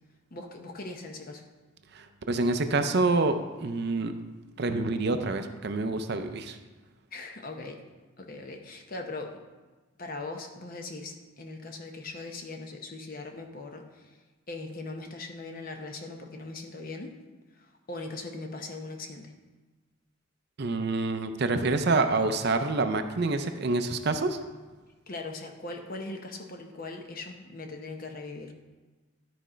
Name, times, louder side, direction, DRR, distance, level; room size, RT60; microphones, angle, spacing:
voice 1, 0.3-1.4 7.1-7.8 8.2-9.4 10.0-14.1 14.5-17.2 17.6-19.3 25.1-28.5, left 3 dB, 40° left, 3 dB, 0.8 m, -40 dB
voice 2, 2.0-4.1 4.6-6.6 20.6-24.4, right 3 dB, 50° right, 8 dB, 0.5 m, -27 dB
11.5 x 4.3 x 5.0 m, 1.3 s
head